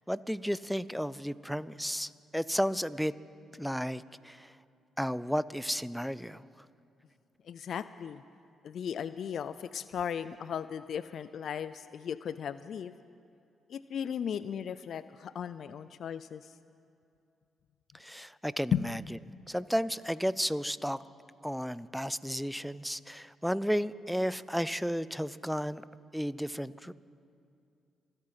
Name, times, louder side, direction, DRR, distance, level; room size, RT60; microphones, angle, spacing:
voice 1, 0.1-3.1 3.6-4.5 5.0-6.4 18.0-19.0 19.5-21.0 21.4-25.8 26.1-26.9, equal, ahead, 18 dB, 0.5 m, -33 dB
voice 2, 7.5-8.2 8.6-13.0 13.7-16.5 18.7-18.9, left 8 dB, 65° left, 14 dB, 0.4 m, -36 dB
26.5 x 8.9 x 5.7 m, 2.5 s
supercardioid pair, 55°, 0 cm